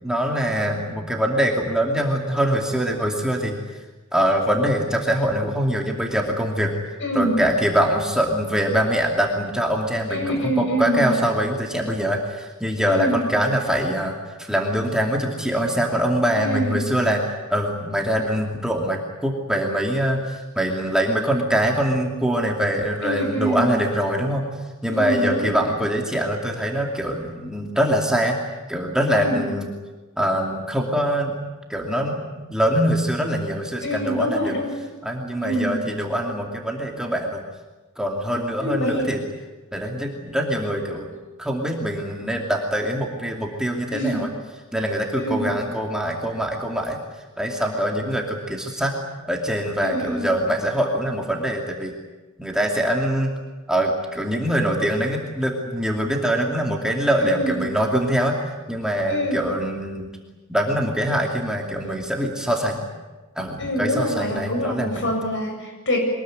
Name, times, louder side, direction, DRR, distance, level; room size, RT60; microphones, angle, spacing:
voice 1, 0.0-3.6 4.1-6.7 7.1-24.4 24.8-28.4 28.7-29.7 30.2-31.3 31.7-34.5 35.0-37.4 38.0-39.2 39.7-44.3 44.7-47.0 47.4-48.9 49.2-52.0 52.4-53.3 53.7-60.1 60.5-62.9 63.4-65.1, equal, 5° right, 0 dB, 2.6 m, -23 dB
voice 2, 7.0-7.4 10.1-11.1 12.9-13.2 16.3-16.9 23.0-23.7 24.9-25.5 29.1-29.4 33.8-34.7 35.4-35.7 38.6-39.1 43.9-44.2 45.2-45.5 49.8-50.3 57.2-57.7 59.1-59.4 63.6-66.0, equal, 60° left, 2 dB, 7.9 m, -25 dB
24.0 x 20.5 x 9.5 m, 1.2 s
head